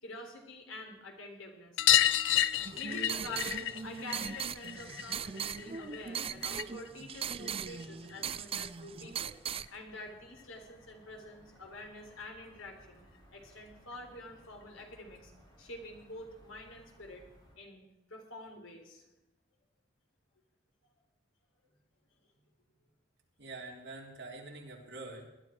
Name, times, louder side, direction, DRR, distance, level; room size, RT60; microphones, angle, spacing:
voice 1, 0.0-1.8 2.7-9.4 9.7-13.0 13.3-15.3 15.6-17.3 17.6-17.8 18.1-19.0, left 2 dB, 85° left, 3 dB, 3.7 m, -47 dB
sound 1, 1.8-6.9 7.2-8.3 9.7-9.8 10.0-10.1 10.4-10.5 11.8-11.9 12.2-12.3 12.6-12.7 13.9-14.0 14.8-14.9, left 12 dB, 65° left, 0.6 m, -31 dB
sound 2, 2.5-17.6, equal, 20° left, 4.1 m, -60 dB
sound 3, 2.6-9.7, right 7 dB, 30° right, 0.4 m, -39 dB
voice 2, 23.4-25.3, right 2 dB, 60° right, -1 dB, 3.6 m, -45 dB
20.0 x 12.5 x 4.6 m, 0.96 s
head